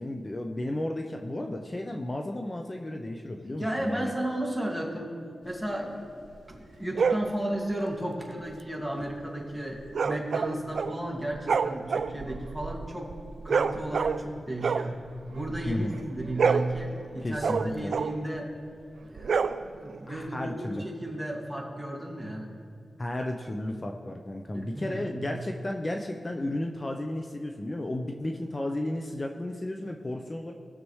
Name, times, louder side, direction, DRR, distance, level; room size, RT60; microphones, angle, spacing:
voice 1, 0.0-4.1 15.7-16.0 17.2-17.9 20.1-20.8 23.0-30.5, left 1 dB, 30° left, 3 dB, 0.6 m, -33 dB
voice 2, 3.6-5.1 5.4-13.1 13.4-15.0 15.3-18.5 19.0-22.5 24.5-25.4, right 1 dB, ahead, -2 dB, 2.1 m, -34 dB
sound 1, 6.9-7.3 9.9-11.0 11.3-14.3 14.6-15.8 16.2-18.3 19.2-20.0, right 5 dB, 75° right, 0.3 m, -28 dB
18.5 x 6.7 x 3.2 m, 2.4 s
wide cardioid pair, 80°, 0 cm